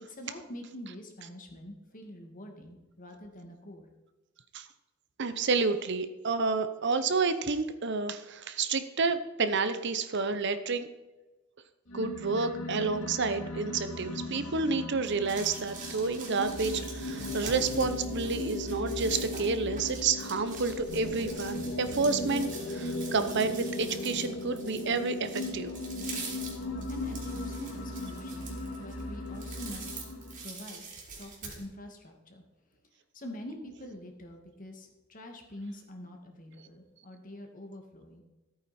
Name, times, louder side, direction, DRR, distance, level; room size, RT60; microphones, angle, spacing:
voice 1, 0.0-3.9 26.9-30.0 30.4-32.4 33.1-38.2, left 1 dB, 40° left, 3 dB, 2.1 m, -45 dB
voice 2, 5.2-10.9 11.9-25.7, right 4 dB, 60° right, 10 dB, 0.8 m, -30 dB
sound 1, 11.9-30.5, left 2 dB, 90° left, 1.7 m, -37 dB
sound 2, 15.0-31.6, right 4 dB, 40° right, 3.5 m, -44 dB
14.5 x 8.9 x 4.3 m, 1.1 s
head